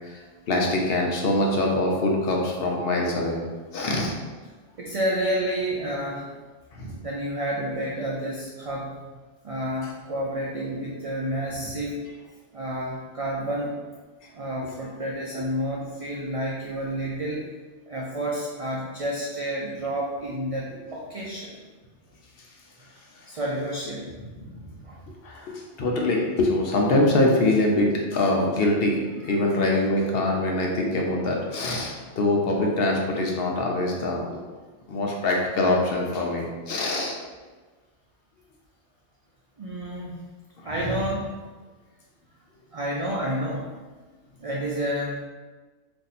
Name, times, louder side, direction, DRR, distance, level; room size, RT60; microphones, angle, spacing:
voice 1, 0.5-3.4 3.7-4.1 6.7-7.0 24.4-24.5 25.2-29.0 29.2-34.4 34.9-37.1, left 2 dB, 65° left, 0 dB, 0.8 m, -24 dB
voice 2, 4.8-6.3 7.0-8.9 9.4-12.0 12.5-13.8 14.3-17.5 17.9-21.5 23.3-24.1 24.8-25.0 29.4-29.5 34.9-35.2 39.6-40.2 40.6-41.3 42.7-43.6 44.4-45.2, right 1 dB, 65° right, -4 dB, 0.3 m, -30 dB
2.6 x 2.6 x 4.0 m, 1.3 s
omnidirectional pair, 1.2 m